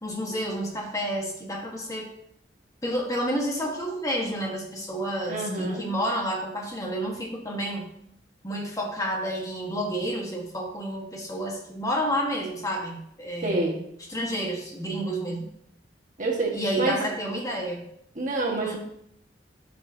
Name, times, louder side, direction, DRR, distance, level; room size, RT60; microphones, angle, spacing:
voice 1, 0.0-2.1 2.8-7.9 8.4-13.7 14.1-15.5 16.5-17.8 18.6-18.8, equal, 20° left, -1 dB, 1.3 m, -30 dB
voice 2, 5.3-5.9 13.4-13.8 16.2-17.0 18.1-18.8, right 2 dB, 45° right, -1 dB, 1.5 m, -27 dB
12.0 x 5.3 x 2.7 m, 0.73 s
head